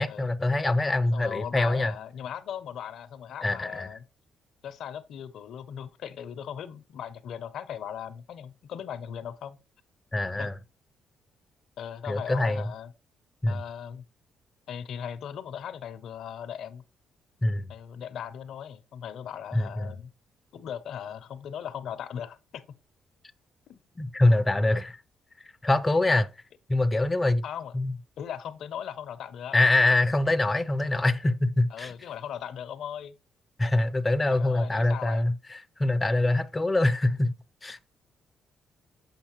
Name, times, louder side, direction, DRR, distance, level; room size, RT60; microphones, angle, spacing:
voice 1, 0.0-1.9 3.4-3.9 10.1-10.5 12.1-12.7 13.4-13.6 17.4-17.7 19.5-19.9 24.0-25.0 25.6-26.3 26.7-27.4 27.7-27.9 29.5-31.9 33.6-37.3 37.6-37.8, left 2 dB, 20° left, 0.4 m, -24 dB
voice 2, 1.1-4.0 4.6-9.6 10.4-10.5 11.8-12.9 13.5-14.0 14.7-16.8 17.7-20.1 20.5-22.6 23.7-23.8 27.4-27.8 28.2-29.6 31.7-33.2 34.3-35.2, left 9 dB, 75° left, 0.5 m, -38 dB
7.2 x 5.2 x 2.9 m
cardioid pair, 90°, 0 cm